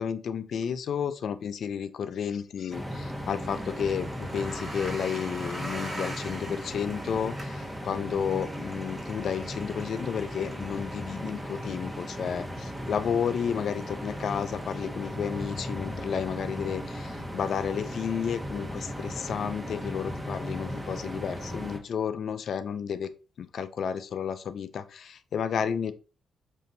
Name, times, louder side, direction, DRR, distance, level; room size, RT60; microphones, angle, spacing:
voice 1, 0.0-23.1 23.4-25.9, left 7 dB, 70° left, 12 dB, 0.4 m, -32 dB
sound 1, 2.7-21.8, equal, 10° right, 0.9 m, -37 dB
sound 2, 3.5-14.9, right 1 dB, 30° right, 1.2 m, -44 dB
5.3 x 2.7 x 2.6 m, 0.36 s
supercardioid pair, 60°, 0 cm